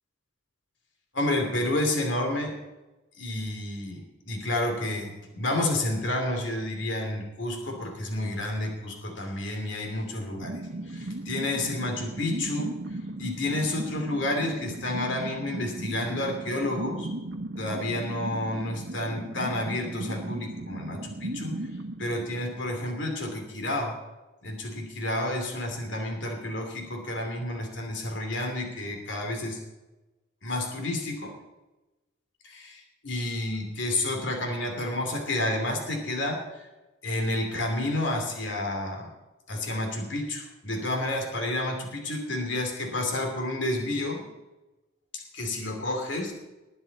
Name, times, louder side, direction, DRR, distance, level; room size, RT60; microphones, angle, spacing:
voice 1, 1.1-2.5 3.2-4.0 4.3-12.7 13.2-17.1 17.6-21.5 22.0-24.0 24.4-29.6 30.4-31.3 32.4-36.7 37.0-39.1 39.5-44.2 45.1-46.3, left 1 dB, 65° left, 3 dB, 2.9 m, -30 dB
sound 1, 10.4-23.1, right 1 dB, 65° right, 1.1 m, -37 dB
20.5 x 9.8 x 4.2 m, 1.1 s
head